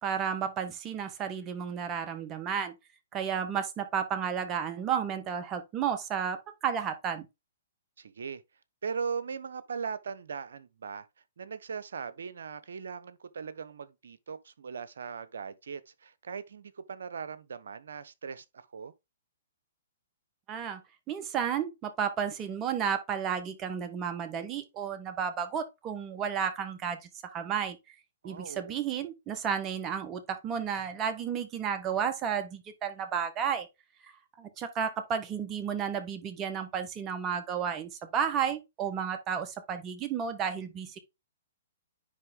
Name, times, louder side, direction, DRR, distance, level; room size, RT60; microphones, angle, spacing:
voice 1, 0.0-2.7 3.1-7.3 20.5-20.8 21.1-27.8 28.2-33.7 34.0-34.1 34.4-41.0, right 7 dB, 25° right, 1.4 m, -32 dB
voice 2, 8.0-8.4 8.8-11.1 11.4-18.9 28.2-28.7, right 6 dB, 75° right, 0.9 m, -39 dB
9.8 x 3.6 x 3.7 m
hypercardioid pair, 130°, 0 cm